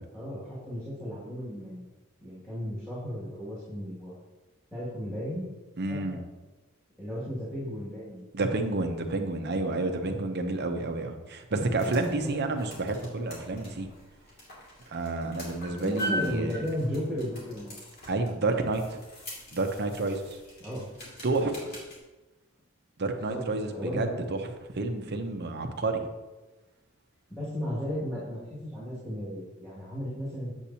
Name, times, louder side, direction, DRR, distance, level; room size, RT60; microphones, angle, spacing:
voice 1, 0.1-1.9 2.2-4.2 4.7-5.5 5.9-6.0 7.0-8.2 10.0-10.2 12.2-12.6 15.7-17.7 20.6-20.9 23.3-24.2 27.3-30.5, equal, 5° left, -11 dB, 2.1 m, -35 dB
voice 2, 5.8-6.2 8.3-13.9 14.9-16.5 18.1-19.0 19.5-20.4 21.2-21.8 23.0-24.4 24.7-26.0, right 2 dB, 50° right, 5 dB, 0.8 m, -30 dB
sound 1, 11.5-22.0, equal, 45° left, 2.5 m, -41 dB
8.4 x 7.2 x 2.9 m, 1.2 s
head